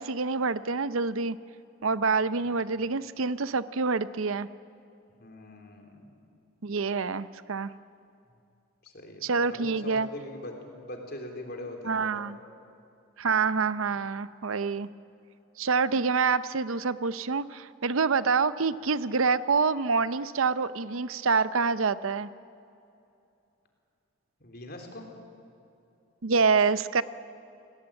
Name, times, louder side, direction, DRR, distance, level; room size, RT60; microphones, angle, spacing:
voice 1, 0.0-1.4 1.8-4.5 6.6-7.7 9.2-10.1 11.8-12.4 13.2-14.9 15.6-22.3 26.2-27.0, right 4 dB, 75° right, 15 dB, 0.7 m, -26 dB
voice 2, 5.2-6.0 8.8-12.4 24.4-25.0, left 1 dB, 45° left, 3 dB, 3.8 m, -42 dB
28.5 x 18.5 x 8.9 m, 2.6 s
head